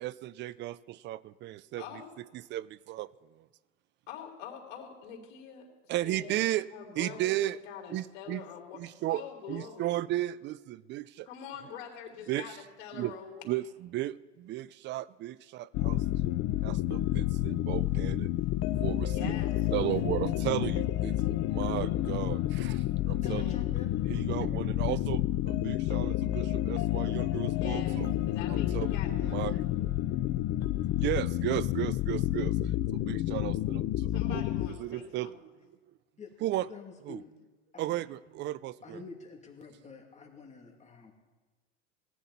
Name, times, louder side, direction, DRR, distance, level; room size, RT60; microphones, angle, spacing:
voice 1, 0.0-1.8 2.3-3.1 3.4-3.5 5.9-6.7 7.0-7.6 7.9-8.4 8.7-9.2 9.5-11.3 12.3-12.5 12.9-13.1 13.4-18.3 18.8-19.4 19.7-23.5 24.1-28.1 28.5-29.6 31.0-32.6 32.9-35.3 36.4-36.7 37.1-37.2 37.8-39.0, right 15 dB, 30° right, 19 dB, 0.4 m, -35 dB
voice 2, 1.8-2.1 4.1-5.7 6.0-6.4 6.7-8.8 9.1-9.9 11.2-13.4 18.9-19.7 23.0-23.7 24.3-24.5 27.5-28.0 28.2-29.9 34.1-35.3, left 8 dB, 65° left, 0 dB, 3.6 m, -45 dB
sound 1, 15.7-34.7, left 14 dB, 40° left, 0.7 m, -30 dB
voice 3, 23.2-24.0 36.2-36.3 36.7-37.3 37.7-38.0 38.8-41.1, left 4 dB, 20° left, 1 dB, 2.7 m, -47 dB
18.5 x 10.0 x 4.1 m, 1.3 s
hypercardioid pair, 100°, 37 cm